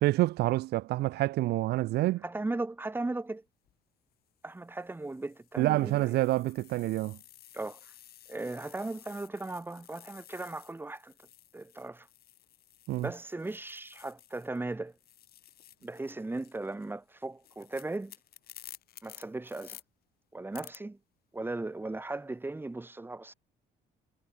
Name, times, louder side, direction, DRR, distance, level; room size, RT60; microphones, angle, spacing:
voice 1, 0.0-2.2 5.6-7.2 12.9-13.1, right 17 dB, 75° right, 1.0 m, -27 dB
voice 2, 2.2-3.4 4.4-6.2 7.5-7.9 8.3-11.1 11.5-12.1 13.0-14.9 15.8-18.1 19.0-19.8 20.3-21.0 21.3-23.3, right 2 dB, 10° right, 3.0 m, -37 dB
sound 1, 3.5-3.7 4.5-14.6 14.9-19.8 20.5-20.8, left 12 dB, 65° left, 4.7 m, -54 dB
cardioid pair, 110°, 17 cm